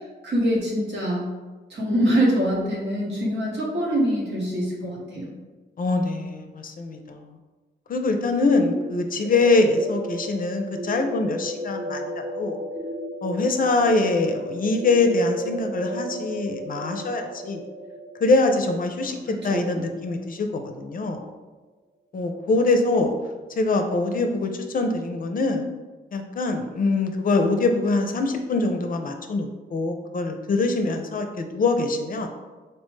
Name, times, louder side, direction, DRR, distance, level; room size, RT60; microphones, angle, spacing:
voice 1, 0.2-1.3 1.7-5.3 19.0-19.9, equal, 70° right, -4 dB, 1.1 m, -24 dB
voice 2, 5.8-7.3 7.9-12.6 13.2-17.6 18.2-21.2 22.1-23.1 23.6-25.7 26.1-32.3, left 3 dB, 50° left, 5 dB, 0.5 m, -24 dB
sound 1, 8.8-20.5, equal, 25° right, 1.0 m, -34 dB
4.2 x 2.0 x 3.1 m, 1.3 s
supercardioid pair, 55°, 19 cm